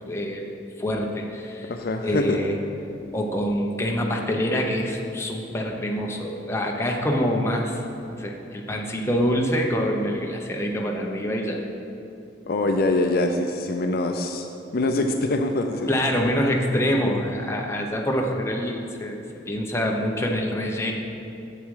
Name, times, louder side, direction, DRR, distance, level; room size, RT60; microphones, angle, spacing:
voice 1, 0.1-1.7 2.0-2.6 3.1-7.8 8.1-11.6 15.9-20.9, equal, 15° left, 0 dB, 0.8 m, -26 dB
voice 2, 1.7-2.5 12.5-14.5 14.7-15.9 16.9-17.1, left 2 dB, 50° left, 5 dB, 0.5 m, -24 dB
8.7 x 7.6 x 4.8 m, 2.8 s
head